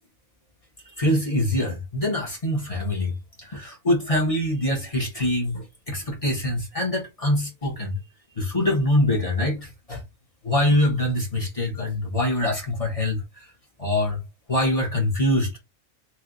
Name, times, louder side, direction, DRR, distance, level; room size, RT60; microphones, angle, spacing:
voice 1, 1.0-8.0 8.3-10.0 10.4-13.5 13.8-14.2 14.5-15.5, left 1 dB, 25° left, 1.4 m, -24 dB
3.3 x 3.0 x 3.9 m
omnidirectional pair, 1.4 m